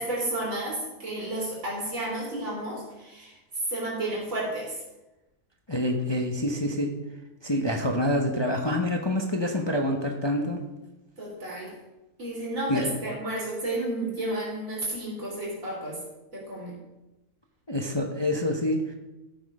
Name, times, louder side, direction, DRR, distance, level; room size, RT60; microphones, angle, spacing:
voice 1, 0.0-4.8 11.2-11.7 12.2-16.0 16.3-16.8, right 1 dB, 55° right, -4 dB, 3.9 m, -32 dB
voice 2, 5.7-6.9 7.4-10.6 12.7-12.8 17.7-18.8, left 1 dB, 20° left, 2 dB, 0.8 m, -26 dB
14.0 x 6.2 x 4.9 m, 1.0 s
omnidirectional pair, 1.6 m